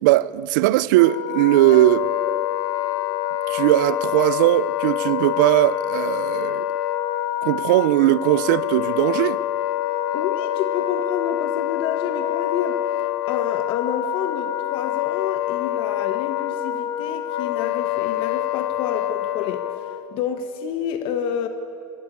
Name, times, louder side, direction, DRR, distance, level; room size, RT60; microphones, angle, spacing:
voice 1, 0.0-2.1 3.5-6.7 7.4-9.4, right 16 dB, 85° right, 0.6 m, -19 dB
Wind instrument woodwind instrument, 0.9-20.0, left 12 dB, 80° left, 1.1 m, -26 dB
voice 2, 10.1-12.8 13.3-21.5, left 8 dB, 60° left, 1.2 m, -29 dB
24.0 x 13.5 x 9.6 m
supercardioid pair, 130°, 10 cm